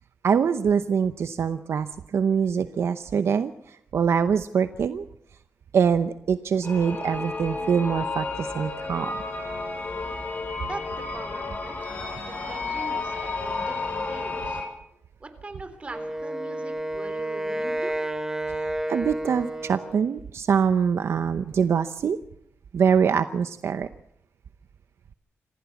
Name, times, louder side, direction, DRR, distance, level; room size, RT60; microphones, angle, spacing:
voice 1, 0.2-5.1 5.7-9.1 18.6-22.2 22.7-23.9, right 7 dB, 65° right, 11 dB, 0.8 m, -24 dB
sound 1, 6.6-14.6, left 3 dB, 45° left, 6.4 m, -32 dB
voice 2, 10.7-14.6 15.2-17.9, right 2 dB, 25° right, 9 dB, 3.6 m, -41 dB
Wind instrument woodwind instrument, 15.9-20.1, right 1 dB, 10° right, 2.6 m, -31 dB
26.0 x 15.5 x 7.1 m, 0.77 s
wide cardioid pair, 120°, 5 cm